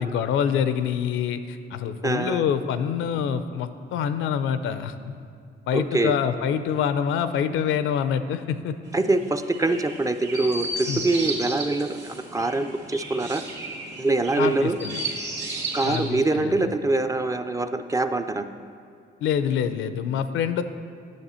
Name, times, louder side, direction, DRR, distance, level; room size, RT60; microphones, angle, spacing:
voice 1, 0.0-5.2 5.7-8.8 10.9-11.0 14.4-15.0 15.8-16.8 19.2-20.6, left 8 dB, 80° left, 11 dB, 0.5 m, -26 dB
voice 2, 2.0-2.4 5.7-6.1 8.9-13.4 14.0-14.8 15.7-18.5, right 2 dB, 15° right, 8 dB, 0.4 m, -24 dB
Chirp tweet, 8.9-16.1, right 2 dB, 65° right, 1.9 m, -34 dB
9.5 x 6.7 x 4.3 m, 2.2 s
cardioid pair, 90°, 20 cm